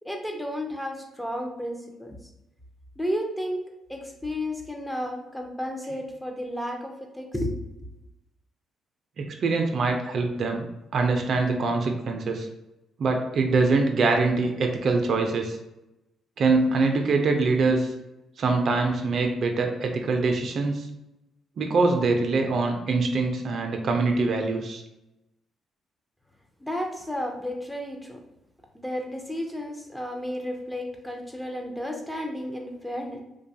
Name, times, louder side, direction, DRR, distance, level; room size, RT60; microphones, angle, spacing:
voice 1, 0.0-2.2 3.0-7.9 26.6-28.2 28.7-33.2, equal, 5° left, 2 dB, 0.5 m, -32 dB
voice 2, 9.2-10.7 10.9-12.5 13.0-15.6 16.4-17.9 18.4-20.9 21.6-24.8, right 3 dB, 55° right, 4 dB, 0.4 m, -24 dB
2.6 x 2.2 x 2.6 m, 0.93 s
cardioid pair, 90°, 0 cm